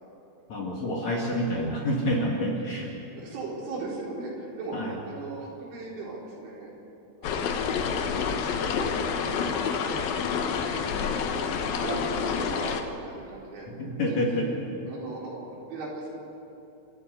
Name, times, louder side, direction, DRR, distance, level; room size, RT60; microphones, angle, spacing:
voice 1, 0.5-2.9 4.7-4.9 13.8-14.5, equal, 50° left, -2 dB, 2.6 m, -28 dB
voice 2, 3.1-6.7 7.2-9.6 10.5-11.3 11.6-14.6 14.9-16.1, right 3 dB, 80° right, -3 dB, 6.6 m, -38 dB
sound 1, 7.2-12.8, left 6 dB, 70° left, 2.4 m, -28 dB
28.5 x 13.5 x 8.1 m, 2.8 s
omnidirectional pair, 5.4 m